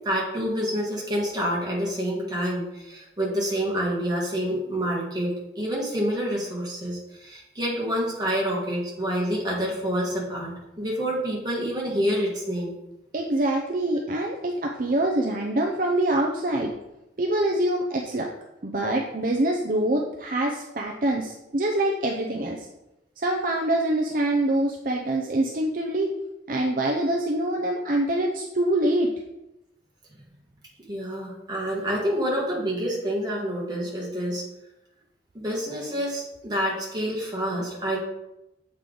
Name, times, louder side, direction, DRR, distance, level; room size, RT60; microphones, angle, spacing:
voice 1, 0.0-12.7 30.9-34.5 35.3-38.0, equal, 20° right, -4 dB, 1.7 m, -28 dB
voice 2, 13.1-16.7 17.2-18.3 18.6-22.7 23.2-26.1 26.5-29.1, right 1 dB, 50° right, 0 dB, 0.6 m, -25 dB
7.3 x 4.9 x 3.9 m, 0.91 s
head